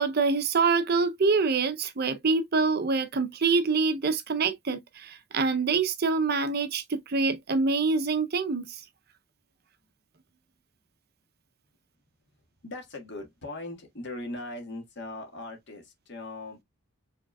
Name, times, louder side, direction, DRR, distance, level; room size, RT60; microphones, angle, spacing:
voice 1, 0.0-8.8, right 4 dB, 45° right, 0.6 m, -25 dB
voice 2, 12.6-16.6, left 2 dB, 50° left, 1.6 m, -39 dB
4.9 x 3.4 x 2.2 m
head